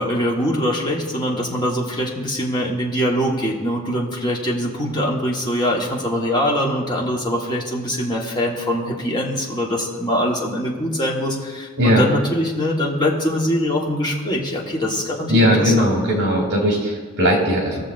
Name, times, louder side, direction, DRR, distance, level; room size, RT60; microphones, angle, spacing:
voice 1, 0.0-15.9, equal, 20° left, -2 dB, 1.2 m, -23 dB
voice 2, 15.3-17.8, equal, 55° right, -1 dB, 2.7 m, -18 dB
19.5 x 6.7 x 2.5 m, 1.5 s
head